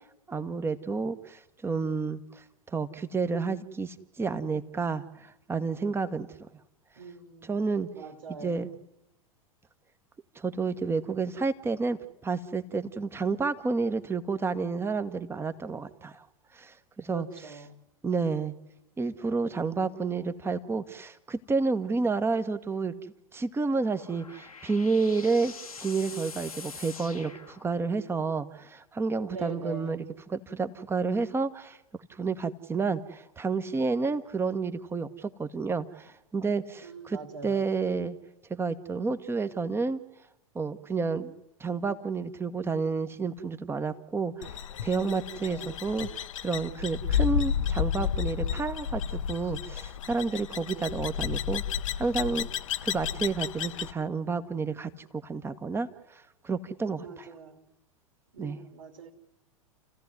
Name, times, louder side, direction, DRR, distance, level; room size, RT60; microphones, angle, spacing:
voice 1, 0.3-2.4 2.7-6.3 7.5-7.9 8.4-8.7 10.3-16.2 16.5-17.3 18.0-18.5 19.0-22.9 23.3-25.5 25.8-30.0 30.3-31.8 32.1-38.1 38.5-40.0 40.5-41.3 41.6-51.6 52.0-52.5 52.8-55.9 56.4-57.3 58.4-58.6, right 4 dB, 15° right, 12 dB, 1.3 m, -30 dB
voice 2, 7.0-7.6 7.9-8.8 17.1-17.8 29.3-30.0 36.8-37.7 45.3-45.8 57.0-57.6 58.3-59.1, right 5 dB, 65° right, 4 dB, 2.8 m, -43 dB
sound 1, 23.6-28.1, left 5 dB, 85° left, 1.3 m, -45 dB
sound 2, 44.4-53.9, left 9 dB, 65° left, 0.9 m, -32 dB
29.5 x 15.5 x 9.6 m, 0.90 s
figure-of-eight pair, 95°, 18 cm